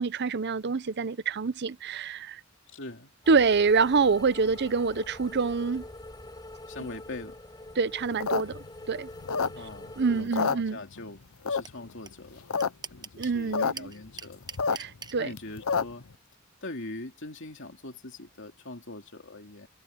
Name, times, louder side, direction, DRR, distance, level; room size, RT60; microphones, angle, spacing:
voice 1, 0.0-2.4 3.3-5.8 7.8-8.6 8.9-9.1 10.0-10.8 13.2-13.9 14.7-15.3, right 4 dB, 50° right, 0.6 m, -26 dB
voice 2, 2.7-3.1 4.4-4.5 6.7-7.4 9.5-14.4 15.1-16.0 16.6-19.7, left 2 dB, 60° left, 2.8 m, -42 dB
sound 1, 3.2-10.2, left 1 dB, 20° left, 6.4 m, -45 dB
sound 2, 8.1-9.9 10.2-11.1 11.5-11.9 12.3-12.7 12.9-13.0 13.2-13.7 14.1-16.1, left 5 dB, 75° left, 0.8 m, -28 dB
sound 3, 11.6-11.7 12.1-12.2 12.3-13.4 13.8-15.1, right 5 dB, 20° right, 0.9 m, -40 dB
head